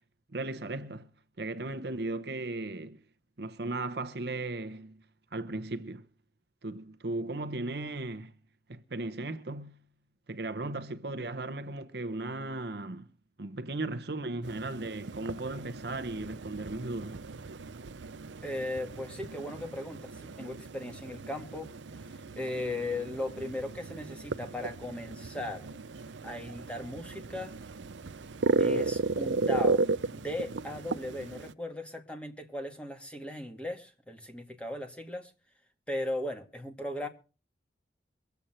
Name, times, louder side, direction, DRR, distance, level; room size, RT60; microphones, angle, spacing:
voice 1, 0.3-1.1 1.4-3.0 3.4-5.0 5.3-6.1 6.6-8.3 8.7-9.8 10.3-13.1 13.4-17.2, right 2 dB, 60° right, 0.9 m, -36 dB
sound 1, 14.4-31.5, right 3 dB, 85° right, 0.6 m, -35 dB
voice 2, 18.4-21.7 22.0-25.8 26.2-27.5 28.6-29.9 30.1-35.3 35.9-37.1, left 1 dB, 5° left, 2.0 m, -37 dB
23.5 x 8.2 x 4.3 m
head